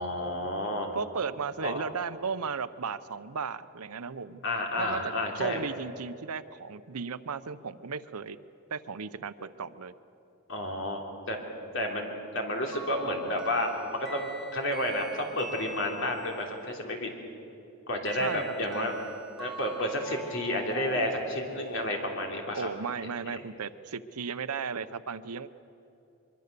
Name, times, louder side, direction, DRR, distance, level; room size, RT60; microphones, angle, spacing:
voice 1, 0.0-0.9 1.6-1.8 4.4-5.6 10.5-11.4 11.7-17.1 17.9-18.9 19.4-22.7, left 1 dB, 55° left, 1 dB, 3.2 m, -31 dB
voice 2, 0.9-4.4 4.8-8.4 8.7-9.9 18.1-18.9 22.5-25.6, right 5 dB, 90° right, 13 dB, 0.7 m, -35 dB
sound 1, 12.7-16.5 18.0-21.8, right 1 dB, ahead, 3.0 m, -44 dB
23.5 x 23.0 x 6.8 m, 2.8 s
head